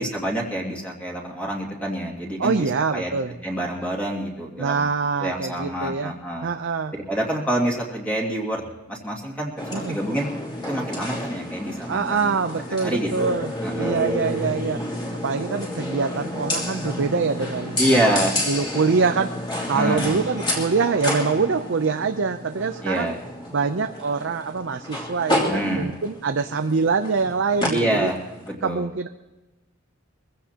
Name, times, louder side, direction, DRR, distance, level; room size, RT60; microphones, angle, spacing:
voice 1, 0.0-4.9 5.2-6.5 7.1-8.6 8.9-10.3 10.7-12.3 12.8-13.4 13.6-14.1 17.8-18.4 19.7-20.2 22.8-23.2 25.5-25.9 27.7-28.2 28.5-28.9, right 1 dB, 5° left, -2 dB, 2.3 m, -26 dB
voice 2, 2.4-3.3 4.6-6.1 6.4-6.9 9.7-10.0 11.9-13.5 13.8-14.9 15.2-18.2 18.5-23.1 23.5-28.1 28.6-29.1, right 5 dB, 60° right, 7 dB, 0.6 m, -24 dB
sound 1, 9.6-28.5, left 1 dB, 20° left, 3.1 m, -30 dB
23.0 x 16.0 x 2.9 m, 1.1 s
head